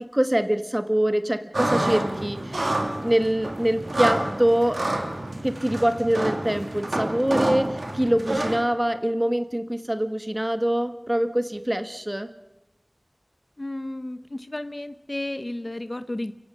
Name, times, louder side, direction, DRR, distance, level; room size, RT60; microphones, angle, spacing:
voice 1, 0.1-2.6 3.0-4.8 5.4-12.3, right 1 dB, 20° right, 9 dB, 1.5 m, -24 dB
sound 1, 1.5-8.6, right 1 dB, 90° right, 3.0 m, -28 dB
voice 2, 13.6-16.3, left 1 dB, 45° left, 11 dB, 1.0 m, -32 dB
30.0 x 16.5 x 6.4 m, 0.98 s
wide cardioid pair, 45°, 0 cm